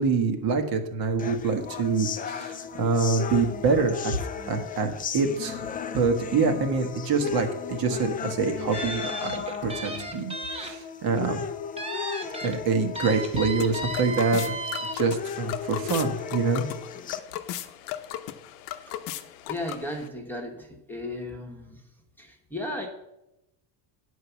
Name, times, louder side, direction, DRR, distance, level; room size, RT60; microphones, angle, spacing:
voice 1, 0.0-4.1 4.5-5.7 5.9-10.3 10.6-11.4 12.4-14.5 14.9-16.6, right 4 dB, 50° right, 5 dB, 1.3 m, -26 dB
sound 1, 1.2-17.2, left 7 dB, 20° left, 0.3 m, -36 dB
sound 2, 8.7-10.7 11.1-11.2 11.8-12.5 12.9-14.9, right 2 dB, 15° right, 1.3 m, -34 dB
sound 3, 12.9-20.1, left 12 dB, 90° left, 0.8 m, -37 dB
voice 2, 19.5-21.8 22.2-22.9, left 1 dB, 5° left, 1 dB, 1.1 m, -35 dB
9.4 x 4.8 x 7.0 m, 0.91 s
cardioid pair, 135°, 44 cm